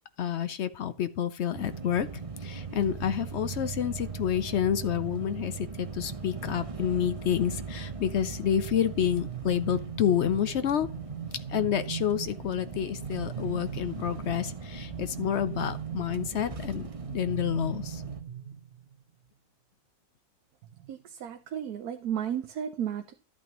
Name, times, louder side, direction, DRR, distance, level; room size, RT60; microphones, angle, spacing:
voice 1, 0.2-2.1 2.4-10.9 11.5-18.0, left 9 dB, 60° left, 13 dB, 0.8 m, -29 dB
sound 1, 1.5-18.2, right 5 dB, 30° right, 0.8 m, -40 dB
sound 2, 8.6-19.0, right 8 dB, 55° right, 0.9 m, -40 dB
voice 2, 20.8-23.1, right 9 dB, 85° right, 6 dB, 1.2 m, -34 dB
12.5 x 8.5 x 3.0 m, 0.35 s
omnidirectional pair, 1.5 m